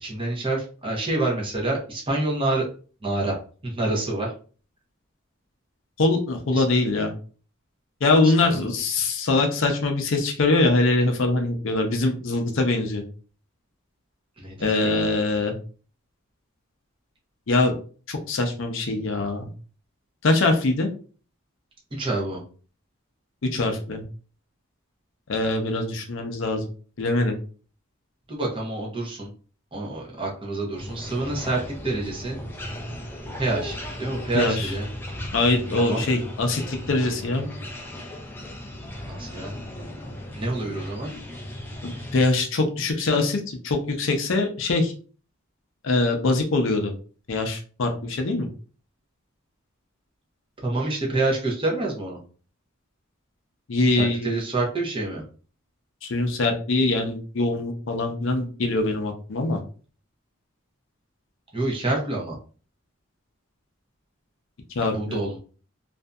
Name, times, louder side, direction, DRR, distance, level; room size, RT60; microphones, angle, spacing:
voice 1, 0.0-2.6 3.0-3.3 3.6-4.3 6.6-6.7 8.2-8.6 14.4-15.0 21.9-22.4 28.3-29.3 29.7-32.4 33.4-34.9 35.8-36.0 39.0-39.5 40.3-41.1 50.6-52.2 54.0-55.2 61.5-62.4 64.9-65.4, right 2 dB, 25° right, -2 dB, 0.7 m, -27 dB
voice 2, 6.0-7.1 8.0-13.0 14.6-15.5 17.5-17.7 18.1-19.5 20.2-20.9 23.4-24.0 25.3-26.7 27.0-27.4 34.3-34.7 35.3-37.5 41.8-44.9 45.8-46.9 47.3-48.5 53.7-54.4 56.0-59.6 64.8-65.2, left 2 dB, 65° left, 4 dB, 0.5 m, -23 dB
sound 1, 30.8-42.2, left 1 dB, 10° left, 0.3 m, -36 dB
2.6 x 2.5 x 2.2 m, 0.39 s
head